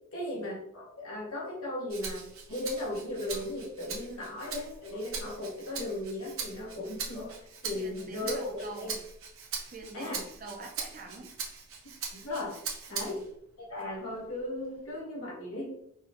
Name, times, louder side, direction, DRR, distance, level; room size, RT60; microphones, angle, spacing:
voice 1, 0.1-9.0 9.9-10.2 12.1-12.6 12.9-13.2 13.6-16.0, left 1 dB, 90° left, -4 dB, 1.4 m, -37 dB
Rattle (instrument), 1.9-13.3 13.8-15.0, right 5 dB, 75° right, 0.9 m, -41 dB
voice 2, 4.1-4.4 6.7-6.8 7.7-9.0 9.7-11.3 12.9-13.2, right 2 dB, 40° right, 3 dB, 0.6 m, -45 dB
4.5 x 2.3 x 3.5 m, 0.74 s
head